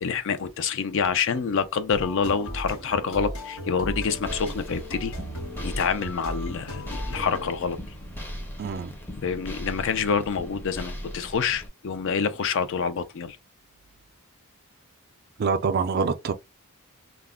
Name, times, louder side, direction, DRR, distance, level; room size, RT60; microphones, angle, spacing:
voice 1, 0.0-5.1 5.6-7.8 9.2-13.4, left 6 dB, 60° left, 0.4 m, -27 dB
sound 1, 1.9-7.6, equal, 85° left, 1.2 m, -36 dB
sound 2, 3.9-11.7, equal, 10° left, 0.5 m, -39 dB
voice 2, 8.6-8.9 15.4-16.3, right 5 dB, 45° right, 0.3 m, -25 dB
2.3 x 2.0 x 3.5 m
head